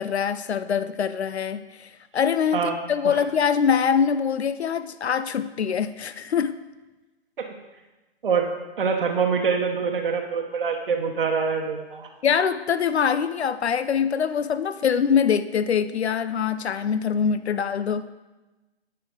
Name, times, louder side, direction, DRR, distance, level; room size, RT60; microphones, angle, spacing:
voice 1, 0.0-6.6 12.2-18.1, left 7 dB, 85° left, 13 dB, 0.6 m, -24 dB
voice 2, 8.8-12.1, right 6 dB, 55° right, 2 dB, 1.1 m, -25 dB
9.9 x 8.8 x 3.8 m, 1.1 s
hypercardioid pair, 160°, 32 cm